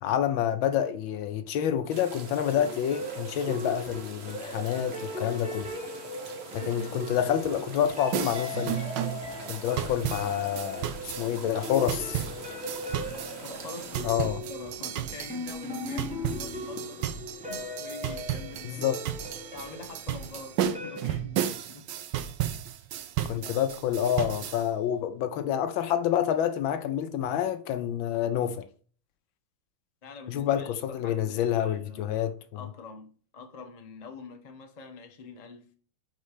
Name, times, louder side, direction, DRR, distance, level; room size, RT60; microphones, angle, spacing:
voice 1, 0.0-5.7 6.5-8.8 9.5-12.0 14.0-14.4 18.6-19.0 23.3-28.7 30.3-32.4, left 10 dB, 75° left, 1.3 m, -28 dB
sound 1, 1.9-14.0, right 4 dB, 50° right, 0.8 m, -45 dB
sound 2, 2.5-21.0, left 1 dB, 5° right, 0.7 m, -39 dB
voice 2, 6.6-6.9 11.7-11.9 13.4-17.1 17.5-19.0 19.5-21.9 22.7-22.9 23.3-23.7 30.0-32.2 32.5-35.7, left 4 dB, 45° left, 0.5 m, -45 dB
sound 3, 8.1-24.7, right 11 dB, 75° right, 1.1 m, -34 dB
5.4 x 4.1 x 4.9 m
omnidirectional pair, 2.4 m